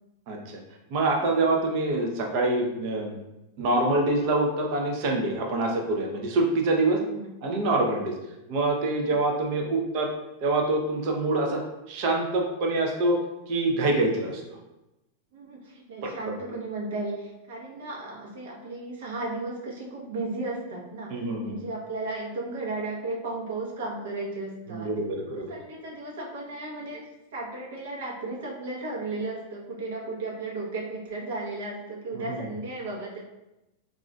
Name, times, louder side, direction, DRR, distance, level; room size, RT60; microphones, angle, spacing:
voice 1, 0.3-0.6 0.9-3.2 3.6-7.0 7.4-8.1 8.5-10.1 10.4-11.6 11.9-13.2 13.5-14.6 16.0-16.1 21.1-21.6 24.7-25.6 32.1-32.5, right 2 dB, 40° right, 1 dB, 0.4 m, -25 dB
voice 2, 6.9-7.3 9.0-9.2 15.3-24.9 25.5-33.2, right 2 dB, 65° right, -3 dB, 0.8 m, -35 dB
2.4 x 2.1 x 3.7 m, 0.95 s
supercardioid pair, 175°, 0 cm